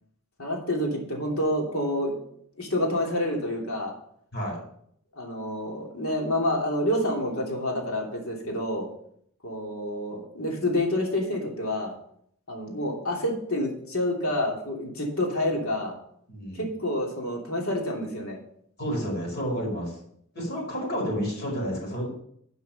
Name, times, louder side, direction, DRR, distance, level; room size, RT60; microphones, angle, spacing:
voice 1, 0.4-2.2 2.6-3.9 5.1-8.9 9.4-11.9 12.5-16.0 16.5-18.4, left 1 dB, 70° left, 0 dB, 2.9 m, -28 dB
voice 2, 16.3-16.7 18.8-20.0 20.3-22.1, equal, 50° left, -2 dB, 4.9 m, -30 dB
10.5 x 5.6 x 5.8 m, 0.67 s
head